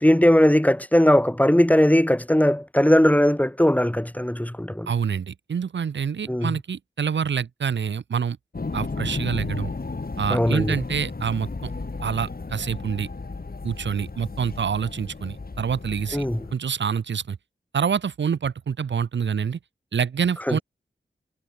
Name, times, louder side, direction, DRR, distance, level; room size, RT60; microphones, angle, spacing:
voice 1, 0.0-4.9 6.3-6.5 10.3-10.8 16.1-16.4 20.5-20.6, left 1 dB, 10° left, 2.4 m, -19 dB
voice 2, 4.9-8.4 8.7-9.7 10.2-11.7 12.0-13.1 13.6-16.3 16.5-17.4 17.7-19.6 19.9-20.6, right 7 dB, 80° right, 0.8 m, -26 dB
sound 1, 8.5-16.5, left 3 dB, 55° left, 5.7 m, -33 dB
cardioid pair, 50°, 19 cm